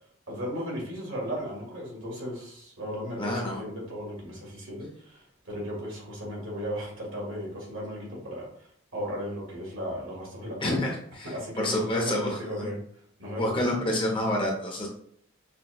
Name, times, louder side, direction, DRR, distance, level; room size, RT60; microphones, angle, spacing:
voice 1, 0.3-8.7 8.9-10.6 11.2-12.8 13.2-13.5, equal, 65° right, -3 dB, 1.5 m, -36 dB
voice 2, 3.1-3.6 10.6-12.7 13.4-14.9, left 1 dB, 25° left, 0 dB, 0.6 m, -28 dB
5.9 x 2.2 x 2.2 m, 0.63 s
head